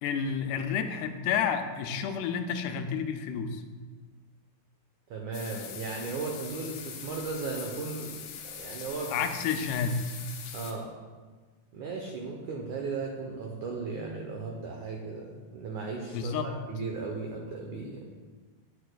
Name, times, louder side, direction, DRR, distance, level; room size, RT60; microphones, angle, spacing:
voice 1, 0.0-3.6 9.1-10.0 16.1-16.5, left 7 dB, 85° left, 7 dB, 2.7 m, -30 dB
voice 2, 5.1-8.1 8.5-9.2 10.5-10.9 11.7-18.0, right 4 dB, 85° right, 1 dB, 1.7 m, -36 dB
sound 1, 5.3-10.7, left 7 dB, 70° left, 2.3 m, -42 dB
11.5 x 9.4 x 2.3 m, 1.4 s
omnidirectional pair, 4.6 m